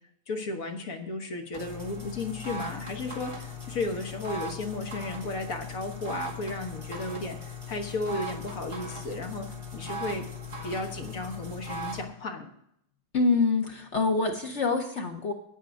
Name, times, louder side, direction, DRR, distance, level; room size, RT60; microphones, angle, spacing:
voice 1, 0.3-7.4 7.7-10.3 10.6-12.5, left 2 dB, 45° left, 4 dB, 1.5 m, -34 dB
sound 1, 1.5-12.0, left 2 dB, 15° right, 1.7 m, -39 dB
voice 2, 13.1-15.3, left 4 dB, 65° left, 3 dB, 0.6 m, -25 dB
9.2 x 8.6 x 5.2 m, 0.72 s
omnidirectional pair, 2.3 m